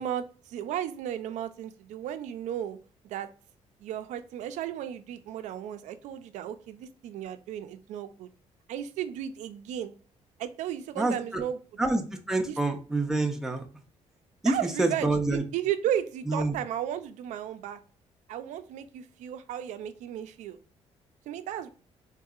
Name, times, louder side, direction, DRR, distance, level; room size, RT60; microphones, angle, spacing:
voice 1, 0.0-2.8 3.0-3.3 3.8-8.3 8.7-9.9 10.4-11.6 12.5-12.6 14.4-17.8 18.3-20.6 21.3-21.7, right 10 dB, 85° right, 10 dB, 0.4 m, -34 dB
voice 2, 11.0-11.4 11.8-13.7 14.4-15.4 16.3-16.6, right 2 dB, 5° right, 3 dB, 0.5 m, -27 dB
3.8 x 2.7 x 2.4 m, 0.39 s
cardioid pair, 140°, 12 cm